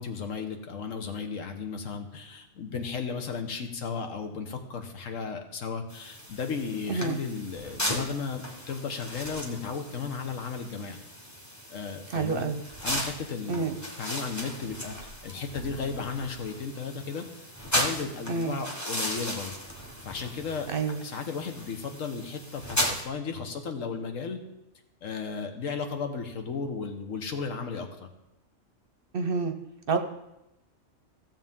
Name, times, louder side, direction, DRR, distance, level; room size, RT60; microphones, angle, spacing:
voice 1, 0.0-11.0 11.7-12.5 12.8-13.7 14.0-15.0 15.2-17.2 17.7-19.5 20.0-20.7 21.0-24.4 25.0-28.1, left 5 dB, 75° left, 5 dB, 1.4 m, -34 dB
sound 1, 5.9-23.0, equal, 15° left, 1.3 m, -36 dB
voice 2, 12.1-12.6 13.5-13.7 18.3-18.6 20.7-21.0 29.1-29.5 29.9-30.0, right 4 dB, 50° right, 6 dB, 0.8 m, -28 dB
15.5 x 7.4 x 3.7 m, 0.91 s
omnidirectional pair, 1.4 m